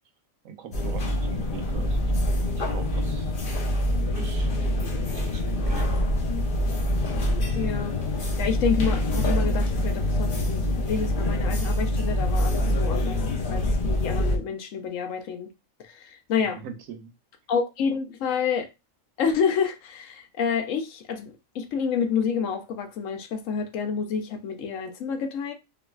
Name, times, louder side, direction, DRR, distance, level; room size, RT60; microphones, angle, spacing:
voice 1, 0.4-2.0 2.5-3.3 4.1-4.5 5.1-6.0 16.4-17.1, right 7 dB, 80° right, 1.0 m, -41 dB
sound 1, 0.7-14.4, left 1 dB, 45° left, 0.8 m, -25 dB
voice 2, 7.5-8.0 8.4-13.2 13.5-15.5 15.8-16.6 17.5-18.7 19.2-25.5, left 6 dB, 75° left, 1.0 m, -28 dB
3.9 x 2.5 x 2.3 m
omnidirectional pair, 1.4 m